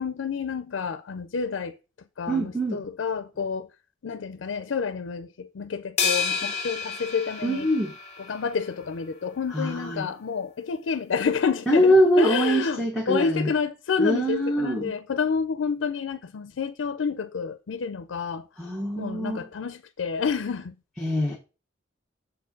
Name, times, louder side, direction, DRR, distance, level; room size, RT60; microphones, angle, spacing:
voice 1, 0.0-1.8 2.2-3.7 4.0-7.7 8.2-20.8, left 5 dB, 90° left, 0.5 m, -29 dB
voice 2, 2.3-2.8 7.4-7.9 9.5-10.1 11.7-13.5 14.0-14.9 18.6-19.5 21.0-21.4, equal, ahead, 1.2 m, -23 dB
sound 1, 6.0-8.5, left 5 dB, 35° left, 1.2 m, -29 dB
6.7 x 4.4 x 5.2 m
head